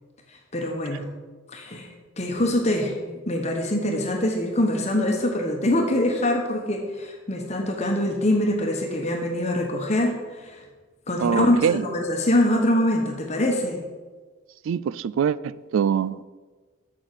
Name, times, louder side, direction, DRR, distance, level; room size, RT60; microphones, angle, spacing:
voice 1, 0.3-1.1 1.5-10.6 11.1-13.8, left 1 dB, 30° left, 1.0 m, -24 dB
voice 2, 11.2-11.9 14.7-16.2, right 7 dB, 70° right, 0.3 m, -23 dB
7.2 x 6.2 x 7.7 m
head